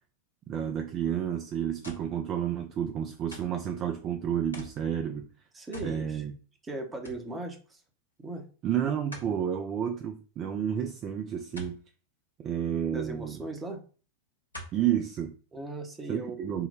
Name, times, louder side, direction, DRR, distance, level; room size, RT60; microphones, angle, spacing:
voice 1, 0.5-5.3 5.8-6.3 8.6-11.8 12.4-13.4 14.7-15.3 16.1-16.7, right 9 dB, 30° right, 0.4 m, -30 dB
sound 1, 1.8-2.2 3.3-3.6 4.5-4.8 5.7-6.0 6.4-6.5 7.0-7.3 9.1-9.4 11.6-11.8 13.3-13.4 14.5-14.8 15.5-15.6, right 1 dB, 80° left, 0.9 m, -43 dB
voice 2, 5.5-6.2 6.6-7.8 8.2-8.5 12.9-13.8 15.5-16.7, right 2 dB, 15° right, 0.8 m, -38 dB
3.7 x 2.1 x 4.2 m
figure-of-eight pair, 90°, 0 cm